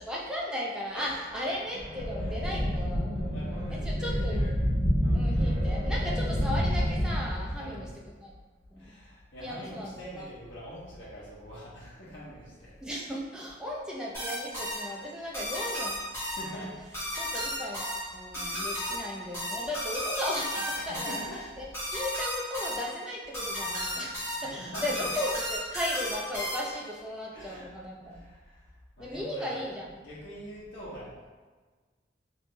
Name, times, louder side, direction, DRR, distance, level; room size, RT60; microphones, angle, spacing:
voice 1, 0.0-3.4 3.7-4.4 5.1-7.9 8.2-8.3 8.7-8.9 9.4-10.3 12.8-16.0 16.4-16.7 17.2-21.3 21.6-28.3 29.0-30.0, left 1 dB, 5° right, -4 dB, 0.5 m, -36 dB
sound 1, 1.7-7.9, equal, 55° left, 0.9 m, -28 dB
voice 2, 3.1-4.5 5.0-5.3 7.6-7.9 8.8-12.8 16.1-16.7 18.3-18.8 20.7-21.4 23.8-24.2 24.4-25.0 27.3-27.7 28.0-28.7 29.0-29.6 30.0-31.3, equal, 75° left, -8 dB, 1.2 m, -44 dB
sound 2, 14.1-26.9, equal, 15° left, 1.3 m, -34 dB
3.2 x 3.1 x 3.1 m, 1.4 s
head